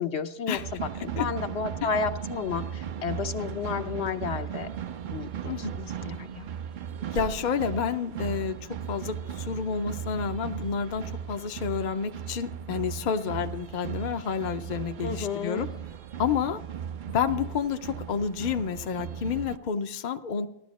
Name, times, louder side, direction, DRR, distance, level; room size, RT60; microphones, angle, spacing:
voice 1, 0.0-4.7 5.1-6.5 15.0-15.7, left 6 dB, 70° left, 7 dB, 1.1 m, -32 dB
sound 1, 0.5-19.6, right 8 dB, 55° right, 0.6 m, -37 dB
voice 2, 0.9-1.3 5.5-5.8 7.1-15.7 16.2-16.6 17.1-20.5, left 6 dB, 50° left, 7 dB, 0.7 m, -30 dB
15.5 x 11.5 x 4.2 m, 0.85 s
omnidirectional pair, 1.2 m